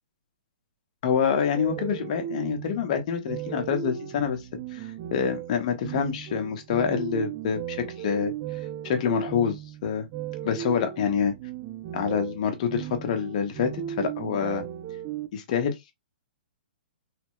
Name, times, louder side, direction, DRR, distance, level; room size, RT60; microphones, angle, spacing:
voice 1, 1.0-4.4 4.7-8.3 8.8-10.1 10.4-11.3 11.9-14.6 15.3-15.7, left 7 dB, 45° left, 0.9 m, -27 dB
sound 1, 1.5-15.3, right 11 dB, 30° right, 0.4 m, -36 dB
3.3 x 2.1 x 3.1 m
hypercardioid pair, 150°, 5 cm